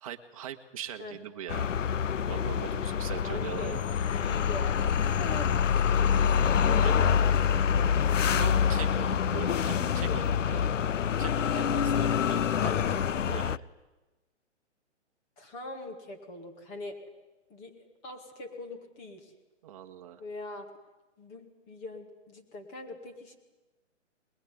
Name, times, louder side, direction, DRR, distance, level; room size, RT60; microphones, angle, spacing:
voice 1, 0.0-1.7 2.2-3.8 6.8-7.0 8.4-10.7 11.2-13.0 13.3-13.6 19.6-20.2, right 10 dB, 30° right, 5 dB, 1.5 m, -41 dB
sound 1, 1.5-13.6, left 7 dB, 90° left, 0.8 m, -26 dB
voice 2, 3.2-3.8 4.1-4.8 5.2-5.5 5.9-8.4 10.0-10.2 12.5-13.1 15.4-17.0 17.5-19.3 20.2-20.7 21.2-23.4, left 2 dB, 15° left, 4 dB, 2.3 m, -42 dB
21.5 x 21.5 x 9.4 m, 1.1 s
hypercardioid pair, 165°, 37 cm